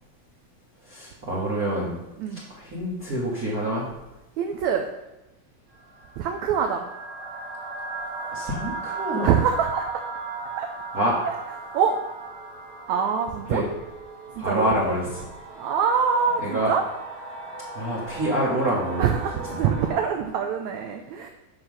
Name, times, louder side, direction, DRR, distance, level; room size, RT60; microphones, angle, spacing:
voice 1, 0.8-2.0 2.3-3.9 8.3-9.3 10.9-11.2 13.5-13.7 14.3-15.3 16.4-16.7 17.7-19.1 19.5-19.6, right 1 dB, 35° right, -6 dB, 1.5 m, -26 dB
voice 2, 4.4-4.9 6.2-6.9 9.2-9.9 10.6-10.7 11.2-11.3 11.7-12.0 12.9-13.6 14.3-14.7 15.5-16.8 19.0-21.3, right 7 dB, 80° right, 4 dB, 1.6 m, -24 dB
sound 1, 5.7-20.0, right 4 dB, 60° right, 3.2 m, -36 dB
9.4 x 4.9 x 6.3 m, 0.99 s
omnidirectional pair, 4.0 m